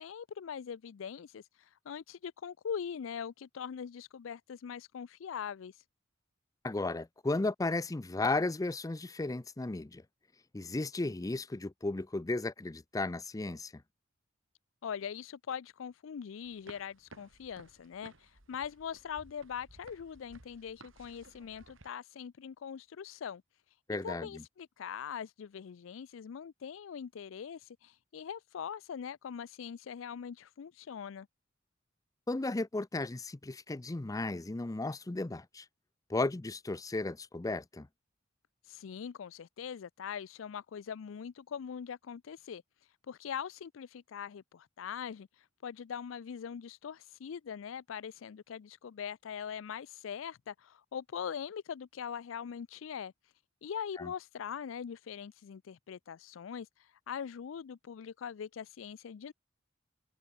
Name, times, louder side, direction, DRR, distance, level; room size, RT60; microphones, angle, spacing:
voice 1, 0.0-5.7 14.8-23.4 24.0-31.3 38.7-42.6 43.1-45.3 45.6-53.1 53.6-59.3, left 7 dB, 75° left, 0.4 m, -42 dB
voice 2, 6.6-10.0 10.5-13.8 23.9-24.4 32.3-35.7 36.1-37.9 54.0-54.1, left 2 dB, 20° left, 0.5 m, -34 dB
sound 1, 16.4-21.9, right 2 dB, 90° right, 4.9 m, -57 dB
open air
head